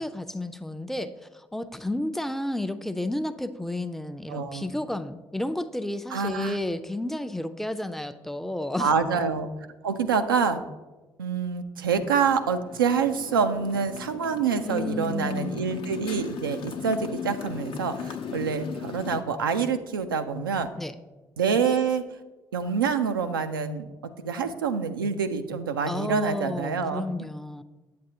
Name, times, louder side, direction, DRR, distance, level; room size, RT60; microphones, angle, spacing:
voice 1, 0.0-8.9 14.6-15.8 20.8-20.9 25.9-27.6, left 1 dB, 5° left, 9 dB, 0.5 m, -32 dB
voice 2, 4.3-4.7 6.1-6.6 8.8-9.5 9.8-10.6 11.2-20.7 21.4-22.0 22.5-27.1, right 6 dB, 85° right, 8 dB, 0.4 m, -26 dB
Motorcycle, 12.0-19.2, left 7 dB, 50° left, 0.6 m, -38 dB
8.7 x 7.5 x 2.8 m, 1.2 s
figure-of-eight pair, 45°, 11 cm